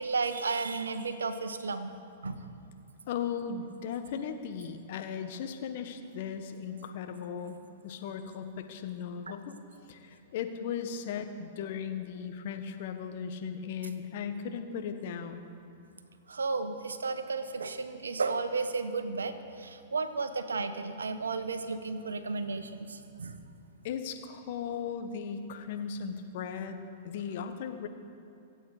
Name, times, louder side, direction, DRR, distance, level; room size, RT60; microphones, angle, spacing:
voice 1, 0.0-1.9 2.2-2.5 9.3-9.4 16.3-23.3, right 4 dB, 85° right, 9 dB, 1.1 m, -33 dB
voice 2, 3.1-7.6 7.8-9.5 9.9-15.5 23.8-26.8 27.0-27.9, left 7 dB, 55° left, 7 dB, 1.4 m, -37 dB
24.0 x 8.7 x 5.0 m, 2.5 s
hypercardioid pair, 110°, 0 cm